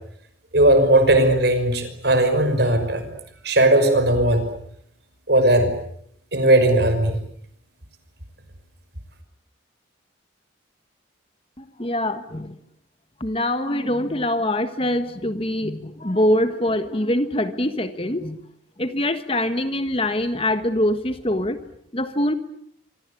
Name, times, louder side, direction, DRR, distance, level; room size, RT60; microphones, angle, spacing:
voice 1, 0.5-3.0 3.4-4.4 5.3-5.7 6.3-7.2, right 1 dB, 55° right, 8 dB, 5.9 m, -17 dB
voice 2, 11.6-12.6 13.2-18.4 18.8-21.6 21.9-22.4, left 1 dB, 30° left, 10 dB, 1.4 m, -24 dB
26.0 x 25.5 x 8.6 m, 0.70 s
head